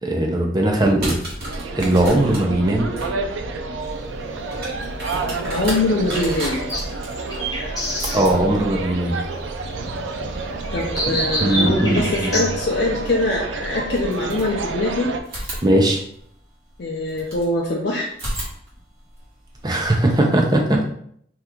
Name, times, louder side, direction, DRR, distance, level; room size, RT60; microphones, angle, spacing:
voice 1, 0.0-1.2 1.8-2.9 8.1-9.2 11.3-12.5 15.6-16.0 19.6-20.8, right 1 dB, 20° right, 1 dB, 0.5 m, -19 dB
sound 1, 0.8-11.6 13.1-13.2 13.9-14.9 15.2-17.5 18.1-20.2, right 1 dB, 55° right, 1.3 m, -35 dB
sound 2, 1.4-15.2, right 3 dB, 85° right, 0.4 m, -29 dB
sound 3, 3.8-12.5, equal, 20° left, 1.1 m, -30 dB
voice 2, 5.5-6.7 8.1-8.6 10.7-15.2 16.8-18.1, left 2 dB, 60° left, -2 dB, 0.5 m, -23 dB
2.9 x 2.4 x 3.6 m, 0.65 s
head